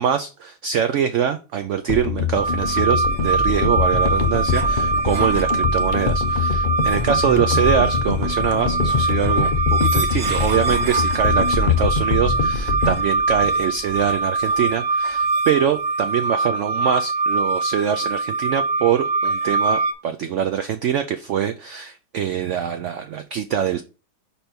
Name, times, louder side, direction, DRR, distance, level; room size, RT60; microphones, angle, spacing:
voice 1, 0.0-23.8, right 8 dB, 80° right, 8 dB, 0.6 m, -24 dB
sound 1, 1.9-14.2 14.5-14.7, left 6 dB, 65° left, 0.5 m, -23 dB
sound 2, 2.4-19.9, right 3 dB, 65° right, 1.2 m, -23 dB
5.3 x 4.4 x 4.3 m, 0.32 s
omnidirectional pair, 1.8 m